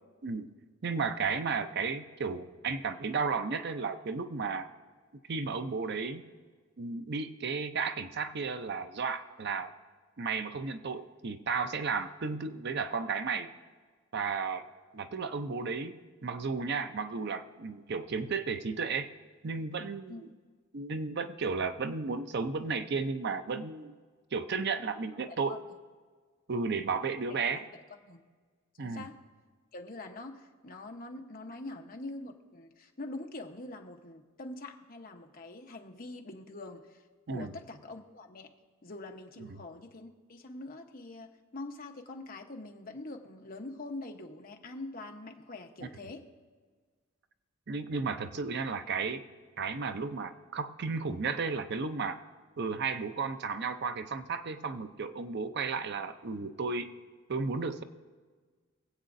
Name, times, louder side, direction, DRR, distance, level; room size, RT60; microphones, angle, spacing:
voice 1, 0.8-4.7 5.3-6.2 6.8-9.7 10.2-13.5 14.1-14.6 14.9-19.1 19.4-20.3 20.7-23.9 24.3-25.6 26.5-27.7 28.8-29.1 37.3-37.6 39.4-39.6 45.8-45.9 47.7-49.2 49.6-52.2 52.6-56.9 57.3-57.8, right 4 dB, 55° right, 9 dB, 0.6 m, -33 dB
voice 2, 25.3-25.6 28.0-28.2 28.8-29.2 29.7-37.0 37.3-38.5 38.8-46.2, left 2 dB, 45° left, 3 dB, 1.0 m, -44 dB
23.5 x 8.2 x 2.6 m, 1.5 s
head